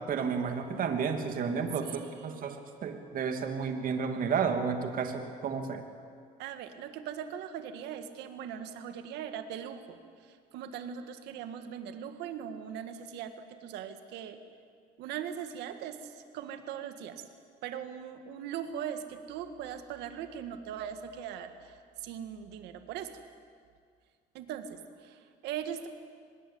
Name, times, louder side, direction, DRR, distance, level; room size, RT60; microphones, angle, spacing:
voice 1, 0.1-5.8, right 6 dB, 55° right, 5 dB, 2.8 m, -32 dB
voice 2, 1.8-2.4 6.4-14.4 15.0-17.2 17.6-23.2 24.3-25.9, right 8 dB, 90° right, 8 dB, 2.0 m, -40 dB
25.5 x 20.5 x 8.8 m, 2.2 s
cardioid pair, 110°, 17 cm